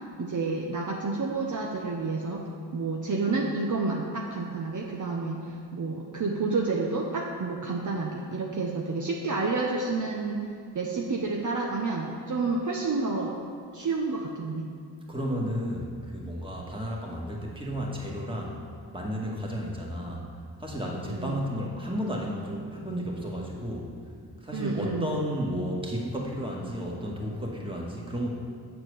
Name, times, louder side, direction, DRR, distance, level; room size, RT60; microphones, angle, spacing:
voice 1, 0.2-2.4 2.7-10.4 10.7-13.3 13.7-14.7 21.1-21.4 24.5-25.1, right 3 dB, 45° right, -1 dB, 0.9 m, -29 dB
voice 2, 15.1-18.6 18.9-20.3 20.6-23.9 24.4-28.3, equal, 10° right, -2 dB, 1.9 m, -32 dB
7.7 x 4.7 x 6.5 m, 2.1 s
cardioid pair, 60°, 41 cm